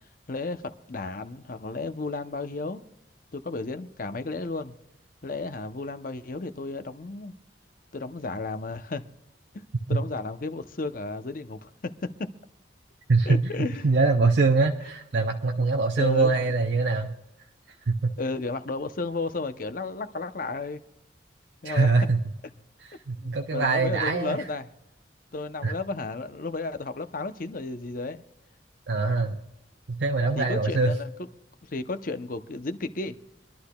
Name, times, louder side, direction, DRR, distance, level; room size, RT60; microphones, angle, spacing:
voice 1, 0.3-2.8 3.3-4.8 5.2-7.3 7.9-9.1 9.5-12.3 13.3-13.9 16.0-16.3 18.2-20.8 21.6-21.9 23.2-24.7 25.3-28.2 30.3-31.1 31.7-33.2, left 3 dB, 50° left, 0.7 m, -33 dB
voice 2, 13.1-13.4 13.8-17.1 17.9-18.1 21.6-22.2 23.1-24.4 25.6-25.7 28.9-29.4 29.9-30.9, right 3 dB, 75° right, 0.7 m, -23 dB
25.5 x 11.5 x 2.3 m
head